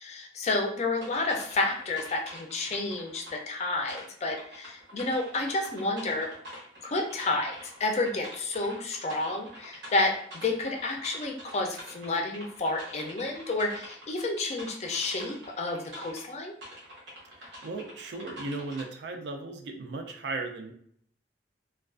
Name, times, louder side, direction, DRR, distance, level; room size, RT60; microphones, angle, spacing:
voice 1, 0.0-6.3 6.8-7.5 7.8-10.2 10.4-16.5, left 2 dB, 40° left, 2 dB, 0.4 m, -30 dB
sound 1, 1.0-3.4 3.9-16.3 16.6-18.8, equal, 85° right, 0.9 m, -46 dB
voice 2, 17.3-20.7, right 3 dB, 70° right, 4 dB, 0.4 m, -36 dB
2.3 x 2.2 x 2.4 m, 0.62 s
head